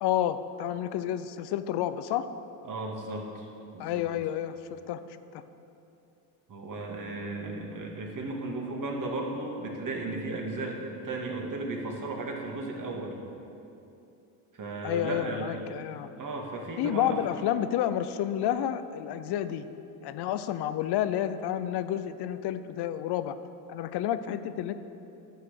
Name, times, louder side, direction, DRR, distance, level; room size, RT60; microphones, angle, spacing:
voice 1, 0.0-2.3 3.8-5.0 5.3-5.4 14.8-16.1 16.8-19.7 20.0-23.4 23.7-24.7, left 11 dB, 60° left, 12 dB, 0.7 m, -30 dB
voice 2, 2.6-3.5 3.7-4.0 6.5-13.2 14.5-15.6 16.2-17.2, right 2 dB, 45° right, 0 dB, 2.4 m, -35 dB
10.5 x 6.6 x 8.1 m, 2.8 s
hypercardioid pair, 65°, 45 cm